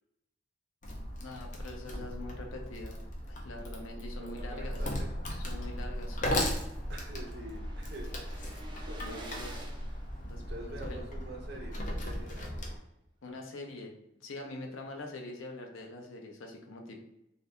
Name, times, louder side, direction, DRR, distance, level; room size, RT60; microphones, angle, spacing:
Wood, 0.8-12.8, equal, 40° left, 0.5 m, -37 dB
voice 1, 1.2-3.0 3.3-4.8 5.4-6.2 9.0-9.5 10.2-11.0 13.2-17.0, left 2 dB, 80° left, 2 dB, 0.6 m, -44 dB
voice 2, 4.2-5.4 6.9-8.5 8.9-9.7 10.3-12.8 14.6-14.7, right 1 dB, 55° right, 1 dB, 0.7 m, -46 dB
sound 1, 6.1-10.9, right 1 dB, 20° right, 0.4 m, -51 dB
2.7 x 2.6 x 3.3 m, 0.87 s
head